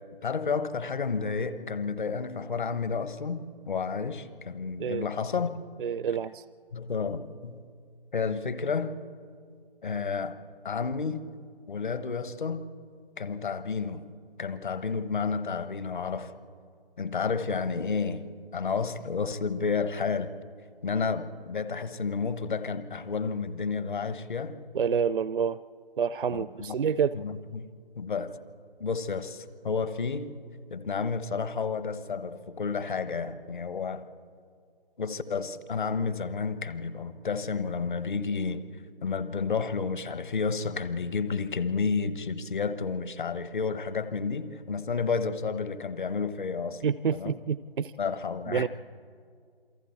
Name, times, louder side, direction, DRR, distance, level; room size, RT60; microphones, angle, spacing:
voice 1, 0.2-5.6 6.7-7.6 8.1-8.9 9.8-10.4 10.6-11.3 11.7-12.7 13.2-14.0 14.4-16.3 17.0-18.2 18.5-20.3 20.8-24.6 26.3-26.7 27.1-27.7 27.9-28.3 28.8-30.3 30.7-34.0 35.0-38.7 39.0-46.8 47.1-47.4 48.0-48.7, left 5 dB, 55° left, 12 dB, 1.3 m, -31 dB
voice 2, 5.8-6.4 24.7-25.6 26.0-27.2 46.8-47.9 48.5-48.7, right 7 dB, 60° right, 17 dB, 0.5 m, -28 dB
28.0 x 23.5 x 4.3 m, 2.2 s
figure-of-eight pair, 150°, 30 cm